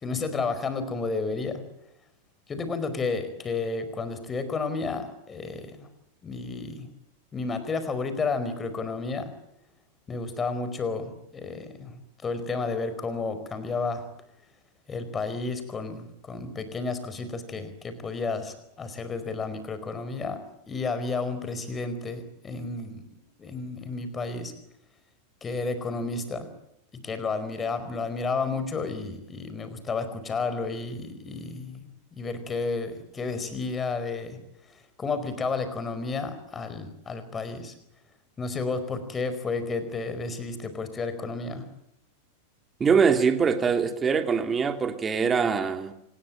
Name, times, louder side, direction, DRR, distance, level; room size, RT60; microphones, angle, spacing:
voice 1, 0.0-1.6 2.5-5.9 6.2-6.9 7.3-9.3 10.1-12.0 12.2-14.0 14.9-20.4 20.7-23.0 23.4-24.5 25.4-26.5 27.0-31.9 32.2-34.4 35.0-37.7 38.4-41.7, left 4 dB, 20° left, 11 dB, 4.7 m, -31 dB
voice 2, 42.8-45.9, right 6 dB, 20° right, 8 dB, 2.7 m, -23 dB
26.5 x 20.5 x 9.1 m, 0.79 s
figure-of-eight pair, 90°, 0 cm